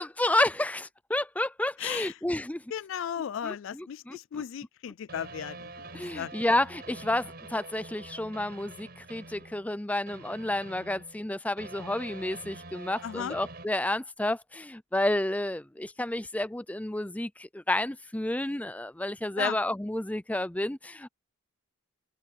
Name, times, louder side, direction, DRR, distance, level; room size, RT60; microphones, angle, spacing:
voice 1, 0.0-2.6 3.4-4.4 5.9-21.1, left 1 dB, 5° left, 0.5 m, -30 dB
voice 2, 1.8-2.1 2.7-6.3 13.0-13.4 19.4-19.6, left 9 dB, 65° left, 0.3 m, -35 dB
sound 1, 5.1-9.8 10.1-13.7, right 2 dB, 50° right, 5.7 m, -46 dB
open air
head